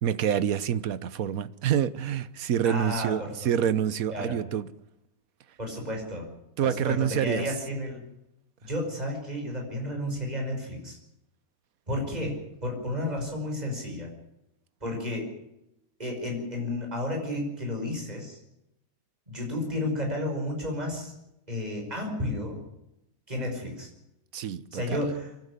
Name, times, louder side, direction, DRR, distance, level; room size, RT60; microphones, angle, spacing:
voice 1, 0.0-4.7 6.6-7.5 24.3-25.1, right 9 dB, 60° right, 1.3 m, -27 dB
voice 2, 2.6-3.3 4.1-4.4 5.6-6.3 6.6-8.0 8.6-11.0 11.9-14.1 14.8-15.3 16.0-18.4 19.3-21.1 21.5-22.6 23.3-23.9 24.7-25.3, left 1 dB, 25° right, 5.8 m, -32 dB
25.0 x 12.0 x 9.8 m
omnidirectional pair, 1.7 m